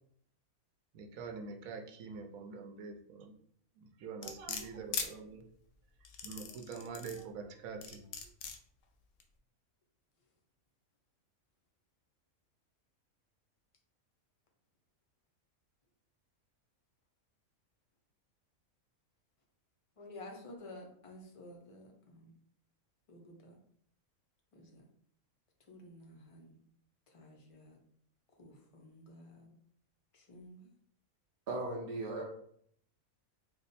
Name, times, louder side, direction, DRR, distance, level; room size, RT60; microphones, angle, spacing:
voice 1, 0.9-3.4 3.8-5.5 6.2-8.3, right 5 dB, 75° right, 3 dB, 1.0 m, -45 dB
sound 1, 4.2-5.1 6.0-7.2 7.8-8.6 9.2-9.3, left 6 dB, 70° left, 0.9 m, -39 dB
voice 2, 20.0-22.3 23.1-23.6 24.5-24.9 25.7-26.6 27.1-27.8 28.4-29.6 30.1-30.7, left 1 dB, 45° left, 1 dB, 0.4 m, -52 dB
voice 3, 31.5-32.2, right 2 dB, 55° right, -2 dB, 0.6 m, -37 dB
3.4 x 2.2 x 4.1 m, 0.65 s
omnidirectional pair, 1.5 m